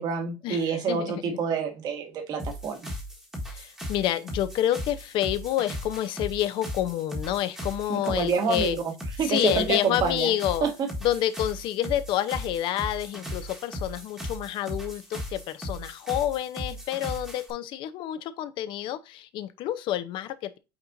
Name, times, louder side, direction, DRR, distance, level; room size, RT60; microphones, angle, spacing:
voice 1, 0.0-2.9 7.9-8.9 9.2-10.3 10.6-10.9, right 5 dB, 40° right, 1.8 m, -27 dB
voice 2, 0.9-1.4 3.5-8.8 9.3-10.7 11.0-20.6, left 12 dB, 50° left, 0.8 m, -28 dB
sound 1, 2.4-17.5, equal, 5° right, 1.5 m, -37 dB
8.7 x 4.3 x 2.6 m
cardioid pair, 155°, 11 cm